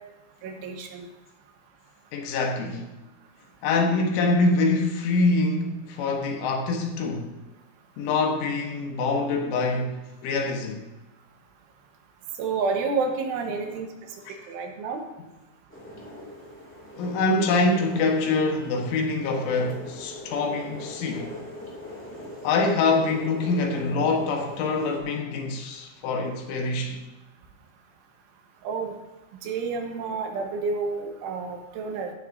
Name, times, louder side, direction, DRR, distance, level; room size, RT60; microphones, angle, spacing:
voice 1, 0.4-1.1 12.4-13.9 14.5-15.0 28.6-28.9 29.4-32.1, right 4 dB, 80° right, 3.7 m, -29 dB
voice 2, 2.1-2.9 3.6-7.3 8.0-10.8 14.3-14.4 17.0-21.3 22.4-27.0, left 3 dB, 80° left, 3.7 m, -25 dB
sound 1, 15.7-25.0, left 1 dB, 10° left, 0.6 m, -41 dB
14.0 x 11.0 x 2.7 m
omnidirectional pair, 5.5 m